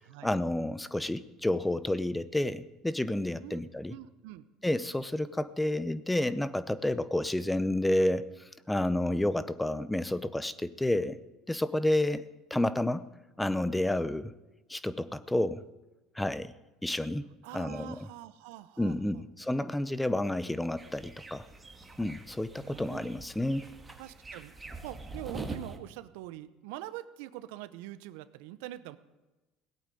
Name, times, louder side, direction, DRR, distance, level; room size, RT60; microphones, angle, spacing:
voice 1, 0.2-4.0 4.6-8.3 8.7-11.2 11.5-12.2 12.5-13.1 13.4-14.3 14.7-15.6 16.2-16.5 16.8-18.1 18.8-21.5 22.0-23.7, left 1 dB, 5° left, 15 dB, 0.8 m, -30 dB
voice 2, 3.9-4.5 17.4-19.2 22.6-23.1 24.0-24.5 24.8-29.0, right 15 dB, 80° right, 15 dB, 0.8 m, -44 dB
sound 1, 20.8-25.8, right 3 dB, 15° right, 1.9 m, -44 dB
17.5 x 8.5 x 9.2 m, 1.1 s
supercardioid pair, 100°, 0 cm